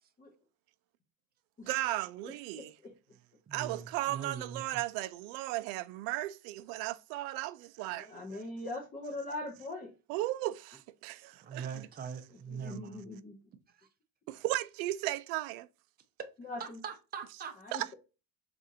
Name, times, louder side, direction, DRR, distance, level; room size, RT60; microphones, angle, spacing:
voice 1, 1.7-2.7 3.5-8.1 10.1-11.8 12.7-12.8 14.3-15.7 17.7-17.9, right 16 dB, 80° right, 0.5 m, -35 dB
voice 2, 2.2-2.9 7.9-9.9 12.6-13.4 16.4-16.8 17.6-17.9, left 2 dB, 20° left, 0.6 m, -41 dB
voice 3, 3.5-4.8 11.4-13.0 13.8-13.9 16.6-17.5, right 7 dB, 25° right, 0.5 m, -42 dB
4.2 x 2.6 x 2.7 m
cardioid pair, 140°, 44 cm